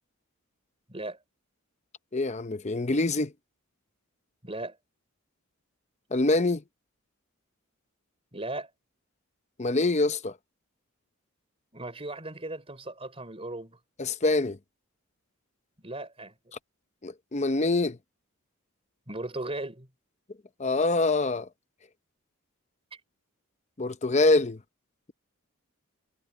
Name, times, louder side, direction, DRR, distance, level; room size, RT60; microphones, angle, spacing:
voice 1, 2.1-3.3 6.1-6.6 9.6-10.3 14.0-14.6 17.0-18.0 20.6-21.5 23.8-24.6, left 2 dB, 30° left, 0.7 m, -25 dB
voice 2, 4.4-4.8 8.3-8.7 11.7-13.8 15.8-16.3 19.1-19.9, right 2 dB, 25° right, 4.0 m, -37 dB
head